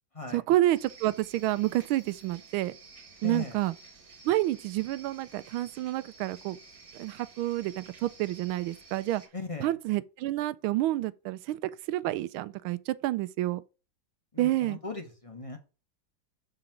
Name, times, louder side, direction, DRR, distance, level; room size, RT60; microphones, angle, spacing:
voice 1, 0.3-2.7 3.2-3.7 4.2-6.6 6.9-9.2 9.6-13.6 14.4-14.8, right 15 dB, 85° right, 1.4 m, -29 dB
sound 1, 0.7-9.3, right 4 dB, 45° right, 2.0 m, -52 dB
voice 2, 3.2-3.6 9.3-9.7 14.3-15.6, left 3 dB, 20° left, 0.9 m, -38 dB
7.2 x 3.9 x 5.9 m
omnidirectional pair, 2.2 m